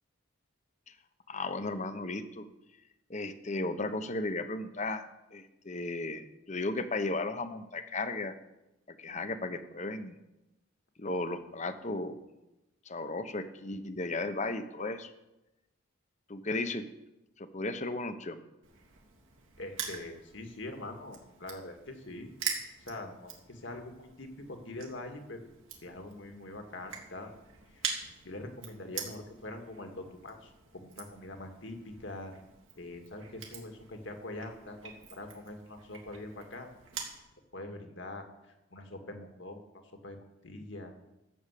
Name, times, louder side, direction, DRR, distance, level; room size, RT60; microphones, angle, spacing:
voice 1, 1.3-2.5 3.1-8.4 8.9-10.2 11.0-12.2 12.9-15.1 16.3-16.8 17.4-18.4, left 2 dB, 35° left, 10 dB, 0.9 m, -35 dB
Crushing, 18.6-37.2, right 7 dB, 85° right, 2.8 m, -44 dB
voice 2, 19.6-22.3 22.9-25.5 25.8-27.4 27.7-27.9 28.2-32.4 32.8-36.7 37.5-40.9, left 2 dB, 65° left, 4 dB, 2.0 m, -44 dB
14.0 x 7.2 x 8.3 m, 0.97 s
head